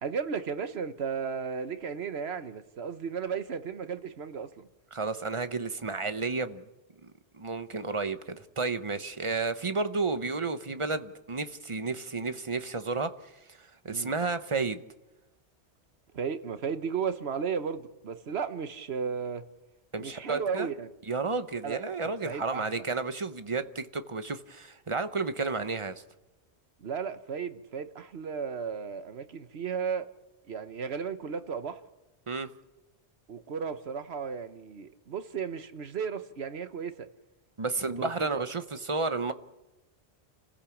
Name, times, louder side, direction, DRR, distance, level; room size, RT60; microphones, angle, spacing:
voice 1, 0.0-4.7 13.9-14.1 16.1-19.4 20.0-20.9 21.6-22.8 26.8-30.1 30.5-31.8 33.3-37.1 38.0-38.4, right 6 dB, 70° right, 10 dB, 1.3 m, -34 dB
voice 2, 4.9-6.6 7.0-13.1 13.5-14.8 19.9-20.7 21.1-26.0 32.3-32.5 37.6-39.3, right 3 dB, 30° right, 10 dB, 0.9 m, -32 dB
29.0 x 15.5 x 7.1 m, 1.0 s
omnidirectional pair, 1.1 m